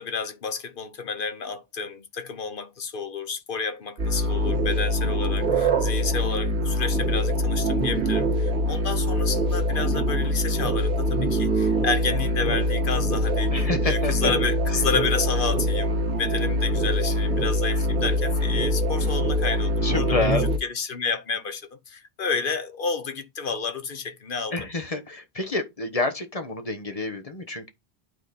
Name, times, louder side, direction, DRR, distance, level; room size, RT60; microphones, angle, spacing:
voice 1, 0.0-13.5 13.8-20.3 20.6-24.6, left 5 dB, 55° left, 1.0 m, -30 dB
sound 1, 4.0-20.6, equal, 80° right, 1.7 m, -24 dB
voice 2, 13.5-14.3 19.8-20.5 24.5-27.7, left 3 dB, 35° left, 1.1 m, -28 dB
9.2 x 4.0 x 4.1 m
omnidirectional pair, 1.1 m